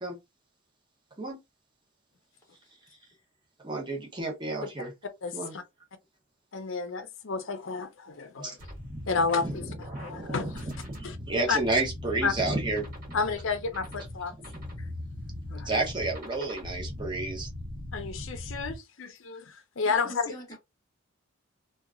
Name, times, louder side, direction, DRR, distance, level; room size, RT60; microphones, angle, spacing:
voice 1, 3.6-4.9 5.3-5.5 8.4-8.5 8.9-9.5 9.9-10.3 10.9-13.2 15.6-17.5, right 2 dB, 20° right, 0.7 m, -31 dB
voice 2, 5.2-5.6 6.5-8.6 9.1-10.7 11.0-11.2 11.5-11.6 12.2-12.3 13.1-14.3 15.5-15.7 17.9-20.3, left 4 dB, 60° left, 0.6 m, -31 dB
sound 1, 8.6-18.8, left 1 dB, 40° right, 1.3 m, -40 dB
voice 3, 19.8-20.6, left 1 dB, 15° left, 0.8 m, -44 dB
2.8 x 2.3 x 2.4 m
head